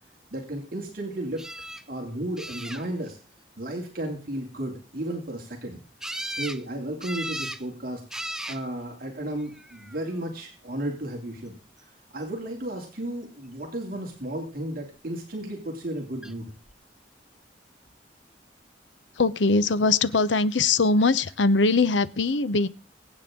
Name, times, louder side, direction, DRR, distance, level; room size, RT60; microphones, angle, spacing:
voice 1, 0.3-1.4 1.9-3.2 3.6-5.8 6.0-8.0 8.5-16.5, right 1 dB, 50° right, 0 dB, 2.7 m, -34 dB
sound 1, 1.4-1.8 2.4-3.1 6.0-6.6 7.0-7.6 8.1-8.6 9.5-10.0 16.2-16.3 16.7-16.8, right 1 dB, 5° right, 0.6 m, -35 dB
voice 2, 19.2-22.7, left 3 dB, 90° left, 15 dB, 0.8 m, -21 dB
23.5 x 8.7 x 3.7 m, 0.34 s
head